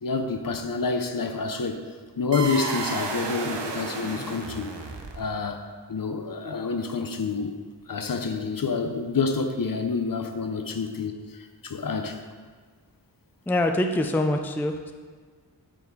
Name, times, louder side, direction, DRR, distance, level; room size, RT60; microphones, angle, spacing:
voice 1, 0.0-1.8 2.2-4.7 5.1-5.6 5.9-7.5 7.9-12.2, left 4 dB, 55° left, 6 dB, 0.7 m, -28 dB
sound 1, 2.3-5.5, right 4 dB, 80° right, 0.9 m, -32 dB
voice 2, 13.5-14.9, left 1 dB, 5° left, 5 dB, 0.4 m, -24 dB
8.4 x 4.3 x 4.6 m, 1.5 s
wide cardioid pair, 55°, 42 cm